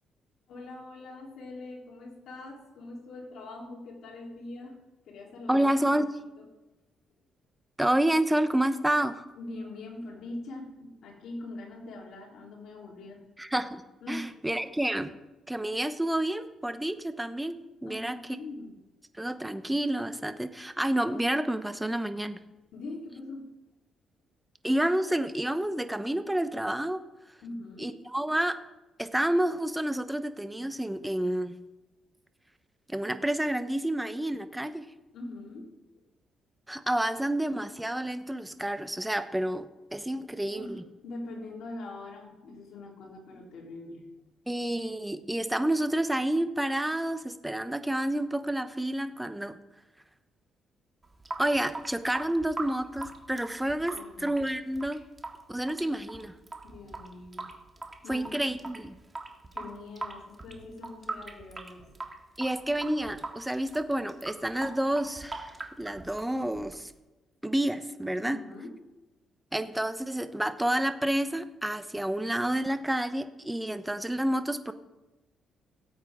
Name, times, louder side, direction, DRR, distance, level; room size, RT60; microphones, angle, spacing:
voice 1, 0.5-4.8 5.0-5.7 6.4-6.5 9.4-13.2 14.0-14.3 17.9-18.7 22.7-23.5 27.4-28.0 35.1-35.7 40.4-44.0 53.9-54.3 56.6-57.5 58.0-58.4 59.5-62.0 68.2-68.8, left 2 dB, 70° left, -2 dB, 3.4 m, -42 dB
voice 2, 5.5-6.1 7.8-9.2 13.4-13.8 14.1-15.2 15.5-18.2 19.2-22.4 24.6-27.0 27.8-28.6 29.0-31.6 32.9-34.9 36.7-40.8 44.5-49.6 51.4-55.0 55.5-56.4 58.1-58.9 62.4-66.9 67.4-68.4 69.5-74.7, right 1 dB, 5° right, 10 dB, 0.9 m, -29 dB
Water tap faucet / Sink (filling or washing) / Drip, 51.0-67.0, right 3 dB, 25° right, 1.8 m, -42 dB
17.5 x 8.4 x 3.7 m, 1.1 s
cardioid pair, 90°, 0 cm